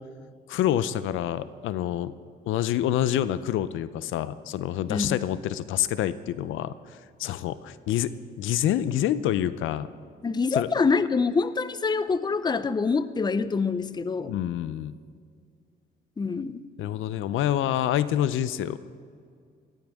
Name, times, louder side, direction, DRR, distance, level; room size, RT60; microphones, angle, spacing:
voice 1, 0.5-2.1 2.5-6.7 7.2-8.1 8.4-9.9 10.5-10.7 14.3-14.9 16.8-18.8, left 11 dB, 80° left, 15 dB, 0.5 m, -27 dB
voice 2, 4.9-5.2 10.2-14.3 16.2-16.6, left 4 dB, 20° left, 14 dB, 0.6 m, -25 dB
18.0 x 15.0 x 3.6 m, 2.2 s
cardioid pair, 90°, 20 cm